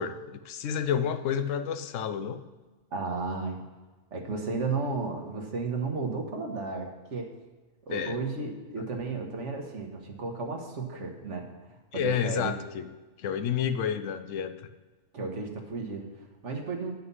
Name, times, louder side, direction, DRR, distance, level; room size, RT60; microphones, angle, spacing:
voice 1, 0.0-2.5 7.9-8.2 11.9-12.9 13.2-14.6, left 8 dB, 80° left, 11 dB, 1.0 m, -30 dB
voice 2, 2.9-3.6 4.1-7.3 7.9-12.5 15.1-16.9, right 4 dB, 70° right, 2 dB, 1.6 m, -34 dB
9.6 x 6.4 x 5.5 m, 1.2 s
omnidirectional pair, 1.3 m